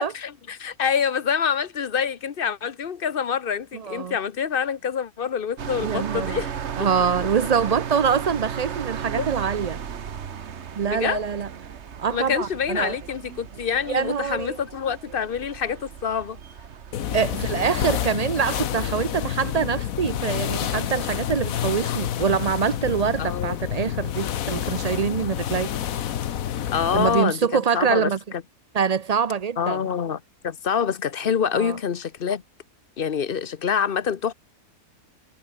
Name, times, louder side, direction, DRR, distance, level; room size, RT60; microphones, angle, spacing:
voice 1, 0.0-6.5 7.4-7.5 9.2-9.3 10.8-11.3 12.1-16.4 23.2-23.6 26.7-28.4 29.6-32.4 33.0-34.3, left 7 dB, 45° left, 0.9 m, -26 dB
voice 2, 3.7-4.2 5.8-6.4 6.8-9.8 10.8-11.5 12.0-13.0 13.9-14.6 17.1-25.7 26.9-28.2 28.7-29.8 31.5-31.8, right 6 dB, 85° right, 0.3 m, -24 dB
sound 1, 5.6-18.0, right 7 dB, 50° right, 1.3 m, -35 dB
sound 2, 16.9-27.2, left 10 dB, 65° left, 1.3 m, -28 dB
omnidirectional pair, 1.6 m